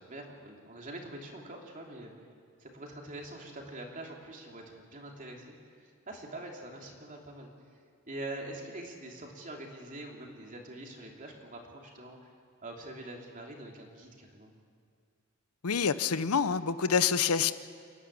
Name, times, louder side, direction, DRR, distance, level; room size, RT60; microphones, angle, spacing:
voice 1, 0.0-2.3 2.6-7.5 8.1-12.3 12.6-14.5, right 1 dB, 35° right, 0 dB, 3.1 m, -44 dB
voice 2, 15.6-17.5, left 6 dB, 85° left, 13 dB, 0.8 m, -27 dB
29.0 x 11.0 x 8.6 m, 2.3 s
head